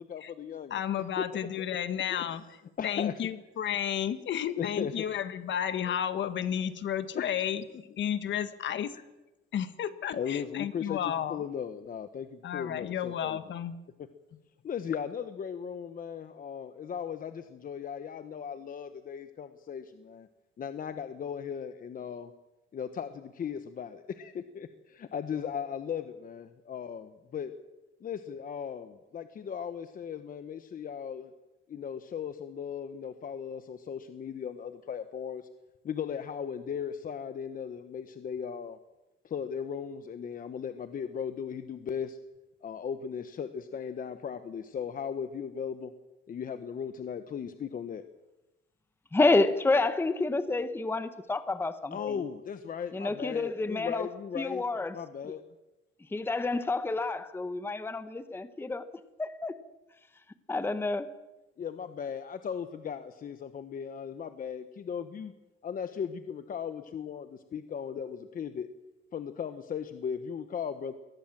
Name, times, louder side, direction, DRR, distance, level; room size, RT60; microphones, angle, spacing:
voice 1, 0.0-0.7 1.2-1.3 2.1-2.2 2.8-3.1 4.6-5.1 5.4-5.5 5.9-6.0 7.1-7.3 10.1-13.4 14.6-20.3 20.6-22.3 22.7-27.5 28.0-31.3 31.7-35.4 35.8-38.8 39.2-42.2 42.6-45.9 46.3-48.0 51.9-54.6 54.9-55.4 61.6-65.3 65.6-68.7 69.1-70.9, left 7 dB, 40° left, 10 dB, 1.0 m, -37 dB
voice 2, 0.7-2.4 2.8-7.6 8.0-8.9 9.5-11.4 12.4-13.8, left 9 dB, 60° left, 12 dB, 1.5 m, -32 dB
voice 3, 49.1-52.1 52.9-54.1 54.3-55.0 56.1-58.9 59.2-59.6 60.5-61.1, left 3 dB, 10° left, 12 dB, 0.8 m, -29 dB
22.5 x 18.5 x 7.4 m, 1.0 s
cardioid pair, 155°, 21 cm